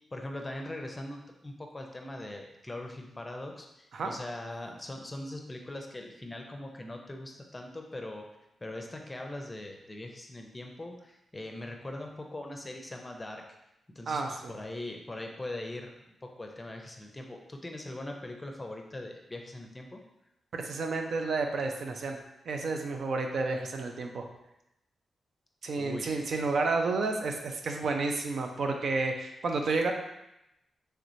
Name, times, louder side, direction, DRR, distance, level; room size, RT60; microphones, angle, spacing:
voice 1, 0.1-8.3 8.6-13.4 13.9-14.2 14.5-15.9 16.2-20.0 25.7-26.2, left 1 dB, 25° left, 2 dB, 0.5 m, -41 dB
voice 2, 14.1-14.5 20.5-22.2 22.5-24.3 25.6-29.9, right 3 dB, 70° right, 3 dB, 0.4 m, -31 dB
3.3 x 3.0 x 2.6 m, 0.86 s
cardioid pair, 70°, 0 cm